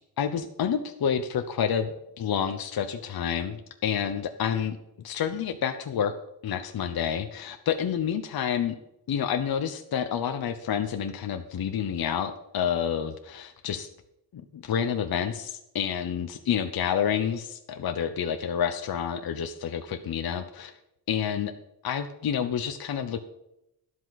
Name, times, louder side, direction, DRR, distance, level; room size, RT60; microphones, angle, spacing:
voice 1, 0.2-4.8 5.0-6.1 6.4-8.8 9.1-13.9 14.3-20.7 21.1-21.5 21.8-23.2, left 8 dB, 55° left, 7 dB, 0.8 m, -29 dB
12.5 x 11.5 x 4.1 m, 0.83 s
wide cardioid pair, 175°, 43 cm